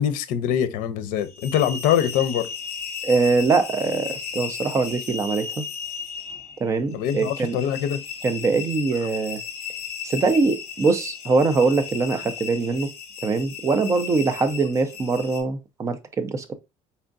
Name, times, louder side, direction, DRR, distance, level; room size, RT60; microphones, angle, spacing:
voice 1, 0.0-2.5 6.9-8.0, left 9 dB, 75° left, 0.6 m, -23 dB
sound 1, 1.2-15.4, left 7 dB, 45° left, 1.9 m, -35 dB
voice 2, 3.0-5.6 6.6-7.6 8.2-9.4 10.0-12.9 13.2-16.5, right 4 dB, 20° right, 0.5 m, -23 dB
4.3 x 3.5 x 2.5 m
cardioid pair, 165°, 14 cm